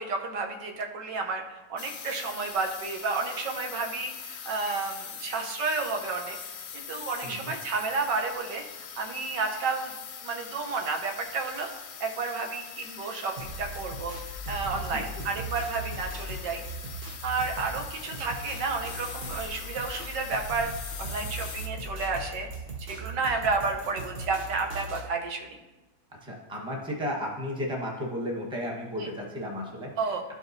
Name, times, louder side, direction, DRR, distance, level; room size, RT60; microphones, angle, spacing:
voice 1, 0.0-6.4 6.7-8.6 9.0-9.9 10.2-16.6 17.2-20.7 21.0-22.5 22.8-25.6 29.0-29.1 30.0-30.2, right 4 dB, 90° right, 2 dB, 1.5 m, -31 dB
sound 1, 1.8-21.7, left 7 dB, 75° left, 0.6 m, -42 dB
sound 2, 13.4-25.1, right 2 dB, 50° right, 0.7 m, -39 dB
voice 2, 14.7-15.2 26.2-30.3, left 1 dB, 5° right, -2 dB, 0.9 m, -34 dB
12.5 x 5.0 x 2.7 m, 1.1 s
omnidirectional pair, 1.8 m